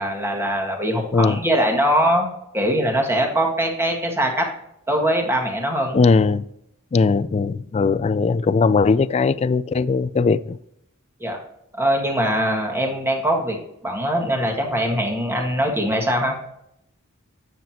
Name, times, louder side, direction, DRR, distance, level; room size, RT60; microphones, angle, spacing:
voice 1, 0.0-2.3 2.5-4.4 4.9-6.0 11.2-11.4 11.8-13.6 13.8-16.3, equal, 10° right, 1.6 m, -22 dB
voice 2, 5.9-6.4 6.9-10.6, left 4 dB, 30° left, 0.3 m, -19 dB
9.5 x 7.5 x 2.9 m
head